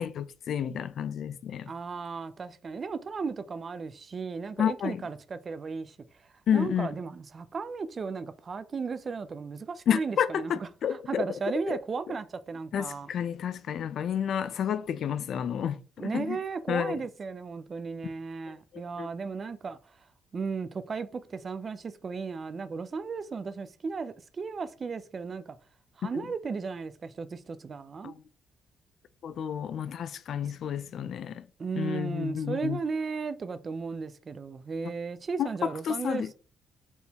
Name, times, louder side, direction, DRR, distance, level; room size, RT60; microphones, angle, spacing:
voice 1, 0.0-1.7 4.6-5.0 6.5-6.9 9.9-11.2 11.7-11.8 12.7-16.4 16.7-17.0 19.0-19.1 26.0-26.1 28.0-28.2 29.2-31.5 31.8-32.8 35.4-36.3, left 9 dB, 60° left, 0.3 m, -30 dB
voice 2, 1.7-6.0 6.5-13.1 16.0-20.0 20.3-25.6 26.0-28.2 30.4-30.5 31.6-36.3, right 5 dB, 35° right, 0.4 m, -35 dB
4.3 x 3.5 x 2.8 m
cardioid pair, 115°, 0 cm